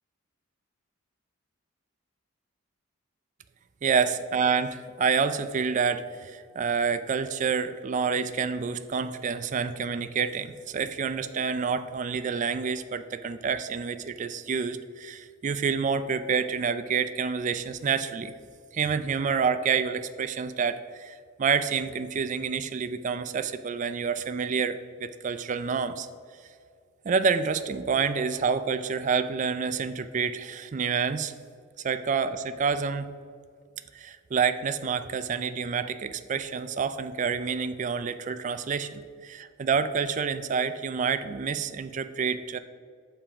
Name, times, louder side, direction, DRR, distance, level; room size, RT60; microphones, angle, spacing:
voice 1, 3.8-18.3 18.7-26.1 27.0-31.3 31.8-33.1 33.9-42.6, right 5 dB, 35° right, 11 dB, 0.3 m, -28 dB
6.9 x 5.7 x 4.9 m, 2.1 s
head